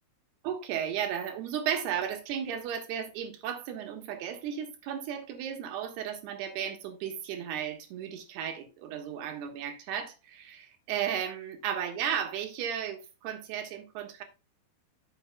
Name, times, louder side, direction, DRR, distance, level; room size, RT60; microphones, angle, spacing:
voice 1, 0.4-14.2, right 9 dB, 75° right, 3.4 m, -34 dB
12.0 x 7.1 x 2.3 m
omnidirectional pair, 4.7 m